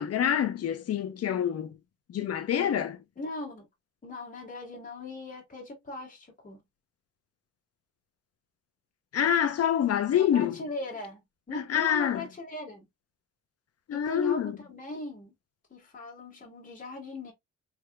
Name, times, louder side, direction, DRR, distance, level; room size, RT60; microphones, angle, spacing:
voice 1, 0.0-1.7 2.1-3.0 9.1-10.5 11.5-12.2 13.9-14.6, left 9 dB, 55° left, 0.8 m, -26 dB
voice 2, 3.2-3.7 4.0-6.6 10.1-11.2 11.5-12.9 13.9-15.3 15.7-17.3, left 2 dB, 25° left, 1.8 m, -39 dB
3.6 x 3.0 x 2.3 m
cardioid pair, 90°, 30 cm